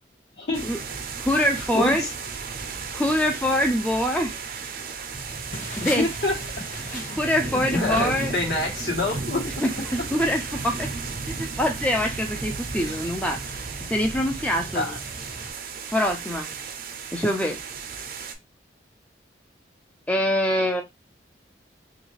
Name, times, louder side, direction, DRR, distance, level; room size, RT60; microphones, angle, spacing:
voice 1, 0.4-0.7 1.7-2.1 6.0-6.8 7.1-7.2 7.7-9.6 12.8-13.0 14.7-15.0, left 2 dB, 65° left, 1.2 m, -27 dB
sound 1, 0.5-18.3, right 5 dB, 50° right, 0.5 m, -35 dB
voice 2, 1.2-2.1 2.9-4.3 5.8-6.1 6.9-8.3 9.6-10.9 11.3-13.4 13.9-15.0 15.9-16.5 17.1-17.6 20.1-20.8, left 1 dB, 5° left, 0.3 m, -24 dB
sound 2, 5.1-15.5, equal, 40° left, 1.3 m, -39 dB
3.0 x 2.5 x 3.1 m
head